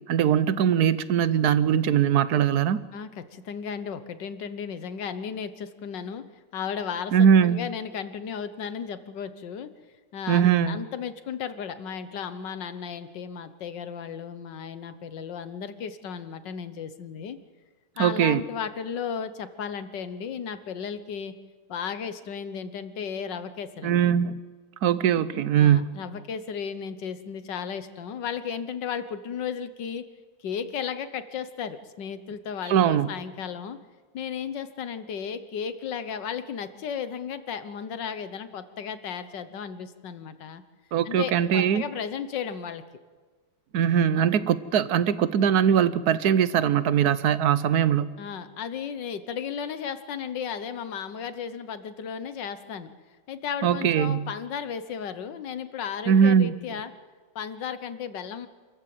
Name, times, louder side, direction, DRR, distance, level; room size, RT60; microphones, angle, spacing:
voice 1, 0.1-2.8 7.1-7.6 10.3-10.8 18.0-18.4 23.8-24.4 24.8-25.9 32.7-33.1 40.9-41.8 43.7-48.1 53.6-54.3 56.1-56.5, right 8 dB, 65° right, 15 dB, 1.3 m, -21 dB
voice 2, 2.9-6.3 6.5-9.7 10.1-17.4 18.0-21.3 21.7-24.1 25.6-30.1 30.4-33.8 34.1-40.6 41.1-42.8 48.2-52.9 53.3-56.9 57.4-58.5, left 7 dB, 80° left, 12 dB, 1.7 m, -34 dB
27.0 x 14.5 x 7.8 m, 1.4 s
omnidirectional pair, 1.9 m